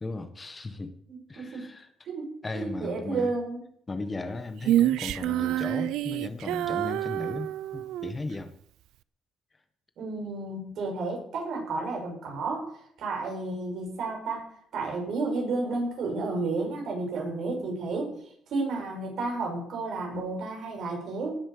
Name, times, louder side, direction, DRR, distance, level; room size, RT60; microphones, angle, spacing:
voice 1, 0.0-0.9 1.3-1.9 2.4-3.3 3.9-8.5, left 3 dB, 20° left, 9 dB, 1.6 m, -36 dB
voice 2, 1.1-1.7 2.0-3.6 10.0-12.7 13.0-14.5 14.7-18.1 18.5-21.4, right 3 dB, 65° right, 0 dB, 6.7 m, -32 dB
Female singing, 4.6-8.2, right 13 dB, 85° right, 0.5 m, -27 dB
18.0 x 7.8 x 6.9 m, 0.66 s
cardioid pair, 115°, 0 cm